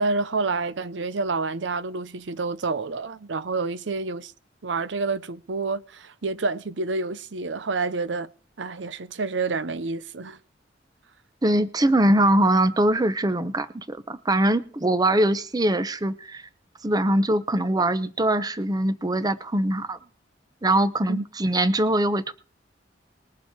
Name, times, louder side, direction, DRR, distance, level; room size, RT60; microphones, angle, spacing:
voice 1, 0.0-4.3 4.6-8.3 8.6-10.4 21.1-21.2, right 3 dB, 90° right, 0.7 m, -28 dB
voice 2, 11.4-16.4 16.8-20.0 20.6-22.3, right 1 dB, 20° right, 0.8 m, -22 dB
21.0 x 7.0 x 4.6 m
head